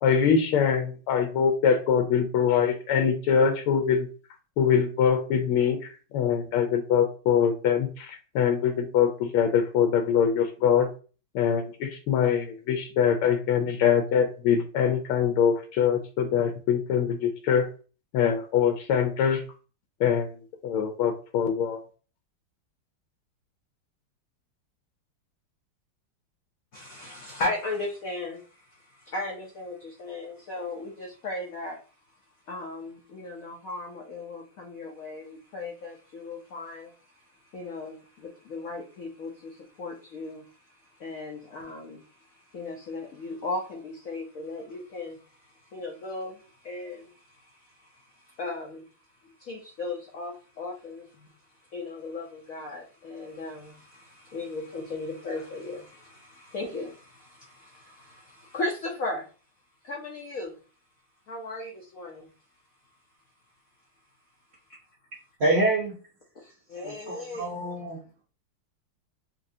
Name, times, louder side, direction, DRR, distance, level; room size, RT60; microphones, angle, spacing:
voice 1, 0.0-4.1 4.6-5.8 6.1-10.9 11.3-17.7 18.1-19.4 20.0-20.3 20.6-21.8, left 7 dB, 90° left, 4 dB, 1.5 m, -23 dB
voice 2, 26.7-31.8 32.5-37.2 37.5-40.4 41.0-48.9 49.4-51.3 51.7-59.3 59.8-60.6 61.3-62.3 66.4-67.5, left 2 dB, 70° left, 0 dB, 0.8 m, -37 dB
voice 3, 65.4-65.9 66.8-68.0, right 2 dB, 75° right, -2 dB, 0.6 m, -26 dB
4.2 x 2.8 x 2.6 m, 0.37 s
omnidirectional pair, 2.3 m